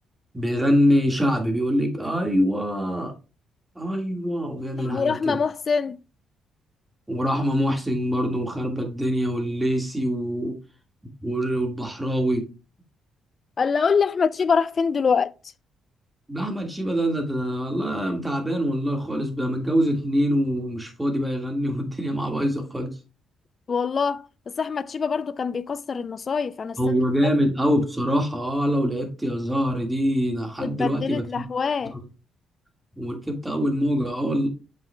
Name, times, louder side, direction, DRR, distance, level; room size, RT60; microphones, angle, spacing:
voice 1, 0.3-3.1 3.8-5.4 7.1-10.6 11.2-12.5 16.3-22.9 26.8-31.5 31.9-32.0 33.0-34.5, equal, 10° right, 1.8 m, -24 dB
voice 2, 4.8-6.0 13.6-15.3 23.7-24.3 24.6-27.0 30.6-32.0, left 5 dB, 40° left, 0.4 m, -24 dB
7.3 x 5.7 x 2.2 m
cardioid pair, 90°, 0 cm